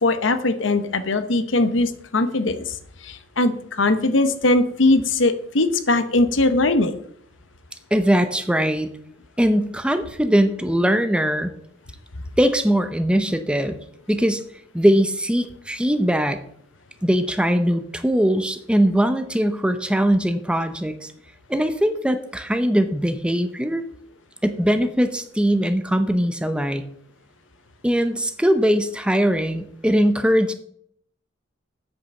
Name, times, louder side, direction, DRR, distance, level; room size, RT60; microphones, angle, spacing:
voice 1, 0.0-2.6 3.0-3.5 3.8-6.9, left 2 dB, 80° left, 10 dB, 1.0 m, -20 dB
voice 2, 7.9-8.9 9.4-11.5 12.4-13.8 14.1-14.4 14.7-16.4 17.0-21.1 21.5-23.8 24.4-26.9 27.8-30.5, equal, 5° right, 9 dB, 0.7 m, -21 dB
8.3 x 6.8 x 6.9 m, 0.67 s
head